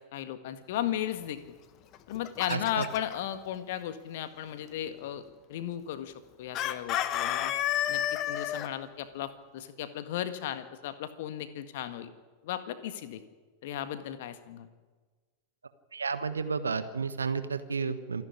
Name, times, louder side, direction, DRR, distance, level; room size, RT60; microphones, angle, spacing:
voice 1, 0.0-1.6 2.1-5.2 5.5-7.5 7.9-12.1 12.4-13.2 13.6-14.7, left 11 dB, 55° left, 11 dB, 1.7 m, -36 dB
Chicken rooster, 1.9-3.1 6.5-8.7, left 12 dB, 35° left, 1.3 m, -30 dB
voice 2, 2.5-2.8 15.9-18.2, right 5 dB, 75° right, 12 dB, 1.3 m, -31 dB
26.5 x 11.0 x 9.9 m, 1.4 s
figure-of-eight pair, 90°, 0 cm